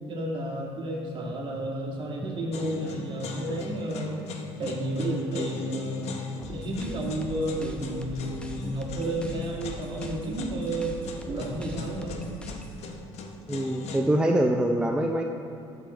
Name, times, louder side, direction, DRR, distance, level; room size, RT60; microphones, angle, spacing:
voice 1, 0.1-4.2 4.6-6.1 6.5-11.0 11.3-12.3, right 1 dB, 45° right, -2 dB, 2.1 m, -31 dB
sound 1, 2.5-14.0, left 3 dB, 65° left, 0.9 m, -40 dB
sound 2, 6.4-12.8, equal, 10° left, 0.9 m, -42 dB
voice 2, 13.5-15.2, right 1 dB, 10° right, 2 dB, 0.5 m, -24 dB
13.0 x 4.6 x 4.3 m, 2.6 s
supercardioid pair, 90°, 12 cm